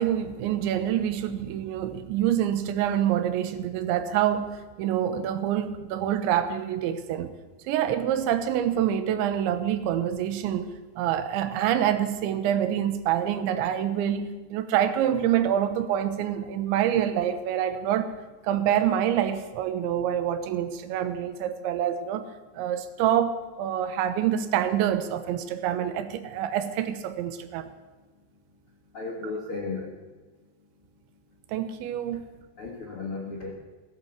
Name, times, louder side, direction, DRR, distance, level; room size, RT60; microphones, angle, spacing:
voice 1, 0.0-7.3 7.7-18.1 18.4-27.7 29.2-29.3 31.5-32.4, right 10 dB, 80° right, 10 dB, 3.3 m, -26 dB
voice 2, 28.9-30.0 32.6-33.5, left 3 dB, 55° left, 0 dB, 1.5 m, -34 dB
17.5 x 11.5 x 7.2 m, 1.3 s
omnidirectional pair, 5.3 m